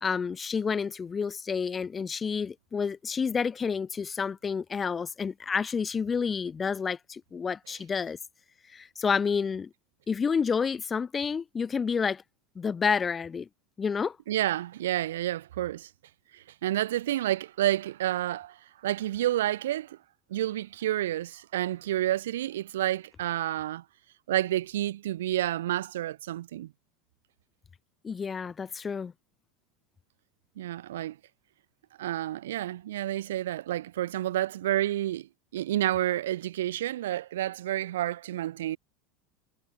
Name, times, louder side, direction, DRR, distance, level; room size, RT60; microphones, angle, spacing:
voice 1, 0.0-8.2 8.7-9.7 10.1-12.2 12.6-13.5 13.8-14.2 28.0-29.1, left 6 dB, 25° left, 1.1 m, -29 dB
voice 2, 14.3-15.9 16.3-20.0 20.3-23.8 24.3-26.7 30.6-31.2 32.0-38.8, right 13 dB, 65° right, 3.2 m, -30 dB
figure-of-eight pair, 75°, 0 cm